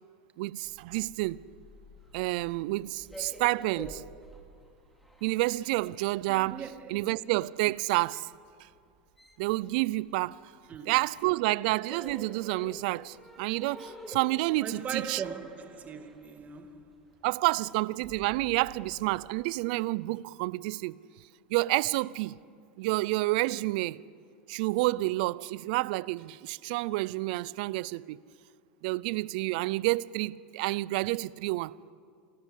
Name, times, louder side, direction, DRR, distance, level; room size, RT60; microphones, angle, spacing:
voice 1, 0.4-1.4 2.1-4.0 5.2-6.6 6.9-8.3 9.4-10.3 10.9-15.2 17.2-20.9 21.5-22.3 22.8-24.0 24.5-28.2 28.8-31.7, right 20 dB, 65° right, 0.5 m, -29 dB
sound 1, 0.6-10.7 10.9-19.4, left 1 dB, 5° left, 3.0 m, -50 dB
voice 2, 6.3-7.1 10.7-10.9 14.6-17.0, right 6 dB, 30° right, 2.2 m, -40 dB
28.5 x 14.0 x 8.4 m
hypercardioid pair, 110°, 5 cm